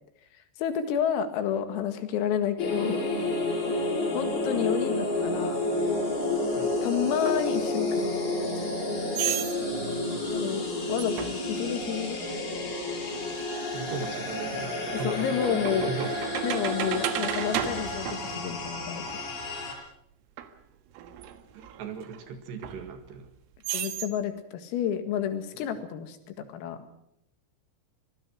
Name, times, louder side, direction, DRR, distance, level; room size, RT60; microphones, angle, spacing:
voice 1, 0.6-3.1 4.1-5.6 6.8-8.1 8.4-8.5 10.3-12.2 15.0-15.9 16.4-19.0 23.7-26.9, left 9 dB, 85° left, 8 dB, 4.7 m, -30 dB
sound 1, 2.6-19.7, left 2 dB, 50° left, 8.6 m, -30 dB
sound 2, 7.3-7.4 9.2-9.6 11.0-11.5 13.6-13.7 14.4-19.0 20.4-20.5 21.0-22.2 22.6-23.3 23.6-24.1, right 11 dB, 85° right, 4.1 m, -34 dB
voice 2, 9.6-10.3 13.7-16.1 21.5-23.3 25.5-25.7, right 5 dB, 65° right, 8 dB, 3.7 m, -38 dB
25.5 x 20.0 x 6.3 m, 0.77 s
omnidirectional pair, 5.9 m